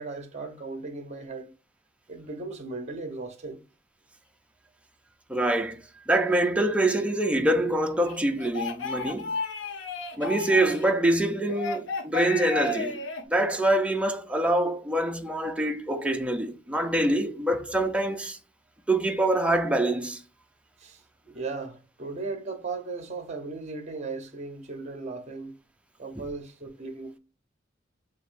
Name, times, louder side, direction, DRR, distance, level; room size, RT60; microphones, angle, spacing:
voice 1, 0.0-1.5 2.1-3.6 20.8-25.5 26.0-27.2, right 3 dB, 35° right, 0.8 m, -37 dB
voice 2, 5.3-5.8 6.1-9.3 10.2-18.4 18.9-20.2, right 1 dB, 5° right, 0.5 m, -25 dB
sound 1, 8.0-10.9 11.5-13.2, left 4 dB, 90° left, 0.7 m, -33 dB
6.4 x 2.9 x 2.5 m
head